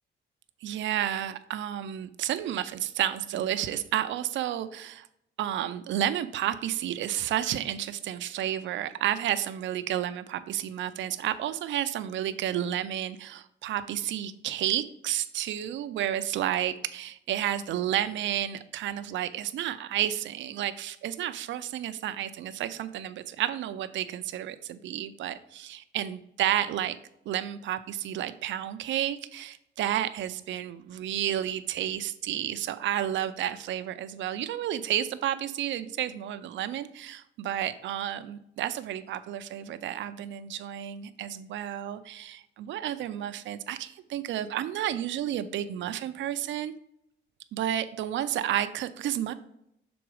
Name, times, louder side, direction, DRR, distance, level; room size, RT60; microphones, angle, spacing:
voice 1, 0.6-5.1 5.4-27.0 27.3-46.7 47.5-49.3, right 11 dB, 65° right, 12 dB, 0.5 m, -31 dB
6.1 x 3.9 x 4.7 m, 0.78 s
cardioid pair, 165°, 21 cm